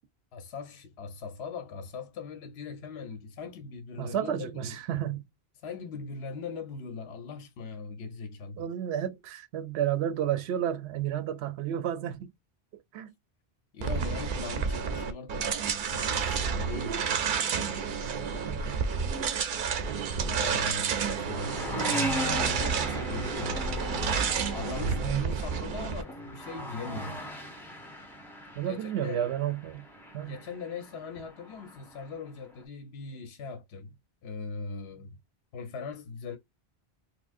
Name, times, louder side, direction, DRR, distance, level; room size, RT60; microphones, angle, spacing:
voice 1, 0.3-4.8 5.6-8.7 13.7-17.0 20.1-23.9 24.5-27.2 28.6-29.2 30.2-35.2 35.5-36.4, left 5 dB, 80° left, 1.0 m, -40 dB
voice 2, 4.0-5.2 8.6-12.3 12.9-13.1 18.1-18.8 19.9-20.6 24.8-25.4 28.5-29.9 30.1-30.4, right 10 dB, 85° right, 0.8 m, -32 dB
sound 1, 13.8-26.0, right 6 dB, 60° right, 0.7 m, -30 dB
sound 2, 18.3-32.6, equal, ahead, 1.2 m, -39 dB
4.3 x 2.1 x 2.5 m
omnidirectional pair, 1.1 m